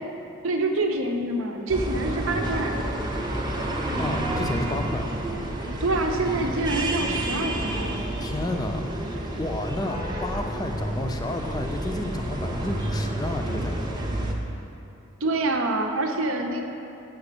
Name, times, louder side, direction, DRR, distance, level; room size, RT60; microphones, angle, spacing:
voice 1, 0.4-2.8 5.8-8.0 15.2-16.6, right 2 dB, 65° right, 3 dB, 0.8 m, -26 dB
sound 1, 1.7-14.3, right 1 dB, 20° right, 0.7 m, -29 dB
voice 2, 4.0-5.1 8.2-8.9 9.2-14.0, left 1 dB, 20° left, 4 dB, 0.5 m, -31 dB
7.2 x 6.1 x 6.8 m, 2.8 s
head